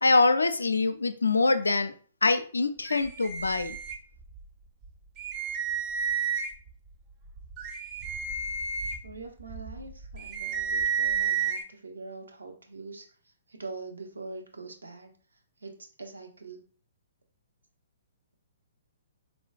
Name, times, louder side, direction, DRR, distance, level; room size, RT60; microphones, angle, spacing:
voice 1, 0.0-1.9 2.2-3.8, left 3 dB, 80° left, 10 dB, 0.3 m, -24 dB
sound 1, 2.9-4.4 4.8-4.9 5.2-6.7 7.2-11.6, right 6 dB, 30° right, 0.5 m, -31 dB
voice 2, 9.0-13.1 13.5-15.1 15.6-16.6, right 3 dB, 80° right, 3 dB, 0.7 m, -43 dB
3.6 x 2.1 x 2.4 m, 0.42 s
figure-of-eight pair, 125°, 0 cm